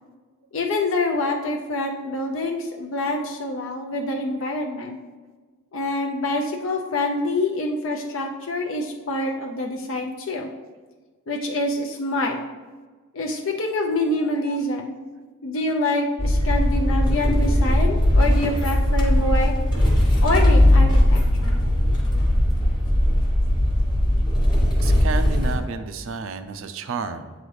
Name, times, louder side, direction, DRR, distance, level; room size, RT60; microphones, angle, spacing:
voice 1, 0.5-5.0 5.7-10.5 11.3-12.4 13.1-14.9 15.4-19.5 20.2-21.6, left 2 dB, 65° left, 1 dB, 0.5 m, -26 dB
sound 1, 16.2-25.6, left 1 dB, 20° left, 1.1 m, -19 dB
voice 2, 24.8-27.3, right 5 dB, 65° right, 10 dB, 0.4 m, -31 dB
7.8 x 4.0 x 3.2 m, 1.4 s
head